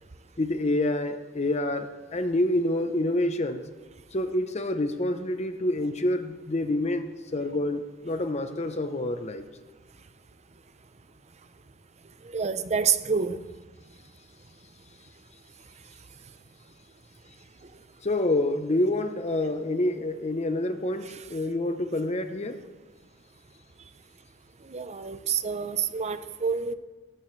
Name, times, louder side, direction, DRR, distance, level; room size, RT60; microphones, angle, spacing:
voice 1, 0.4-3.6 4.1-9.4 18.0-22.6, left 1 dB, 35° left, 8 dB, 0.8 m, -27 dB
voice 2, 12.2-13.4 24.7-26.7, right 6 dB, 35° right, 11 dB, 0.7 m, -27 dB
18.5 x 14.0 x 3.3 m, 1.2 s
head